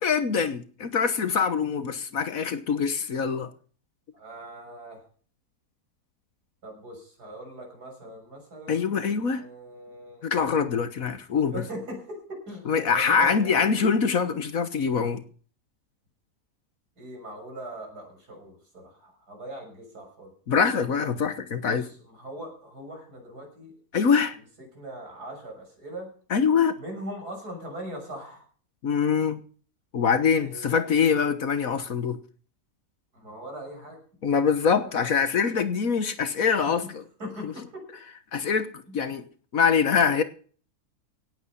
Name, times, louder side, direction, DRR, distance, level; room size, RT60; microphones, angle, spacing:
voice 1, 0.0-3.5 8.7-9.4 10.2-11.6 12.7-15.2 20.5-21.8 23.9-24.4 26.3-26.8 28.8-29.4 29.9-32.2 34.2-37.0 37.4-37.5 38.3-39.3 39.5-40.2, left 6 dB, 60° left, 1.6 m, -24 dB
voice 2, 4.1-5.0 6.6-10.2 11.5-13.7 17.0-20.3 21.7-23.7 24.6-26.1 26.8-28.4 30.4-31.1 33.1-34.0 34.7-35.1 36.6-36.7 37.2-37.8 38.9-39.0, right 1 dB, 70° right, 6.9 m, -40 dB
17.5 x 8.8 x 5.6 m
omnidirectional pair, 1.7 m